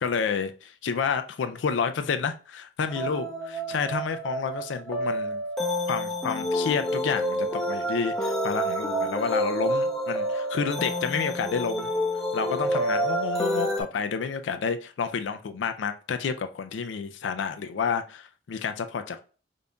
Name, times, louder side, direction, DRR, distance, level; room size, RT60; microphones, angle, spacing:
voice 1, 0.0-5.4 5.9-11.9 12.3-19.2, left 6 dB, 90° left, 0.4 m, -30 dB
sound 1, 2.9-13.8, equal, ahead, 0.6 m, -28 dB
5.1 x 2.6 x 2.2 m
head